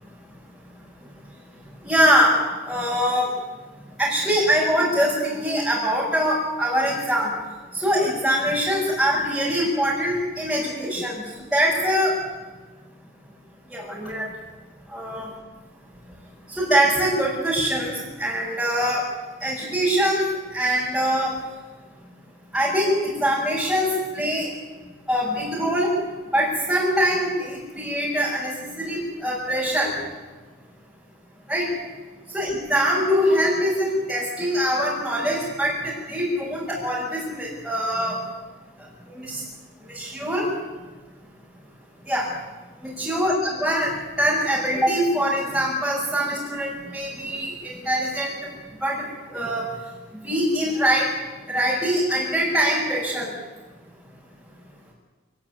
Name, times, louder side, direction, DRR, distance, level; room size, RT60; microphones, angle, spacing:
voice 1, 1.8-2.3 2.7-3.3 4.0-7.3 7.7-11.2 11.5-12.1 13.7-14.3 14.9-15.3 16.6-19.0 19.4-20.2 20.5-21.3 22.5-24.5 25.1-25.9 26.3-29.9 31.5-31.7 32.3-38.2 39.2-39.4 39.9-40.5 42.1-42.3 42.8-43.9 44.2-48.4 48.8-49.0 49.3-49.7 50.2-51.1 51.5-53.3, equal, ahead, -7 dB, 6.7 m, -23 dB
28.5 x 20.0 x 9.8 m, 1.3 s
head